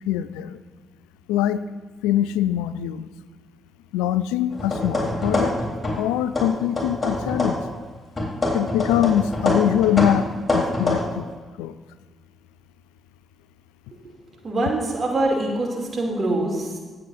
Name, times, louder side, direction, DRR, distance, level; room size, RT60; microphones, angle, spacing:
voice 1, 0.1-0.6 1.3-1.6 2.0-3.1 3.9-5.5 6.0-7.6 8.5-11.3 11.6-11.8, left 11 dB, 80° left, 15 dB, 0.3 m, -23 dB
sound 1, 4.5-6.1 6.3-7.7 8.2-11.0, left 2 dB, 25° left, 3.6 m, -25 dB
voice 2, 14.4-16.8, right 2 dB, 45° right, 0 dB, 2.7 m, -24 dB
19.5 x 7.8 x 2.6 m, 1.4 s
hypercardioid pair, 40°, 0 cm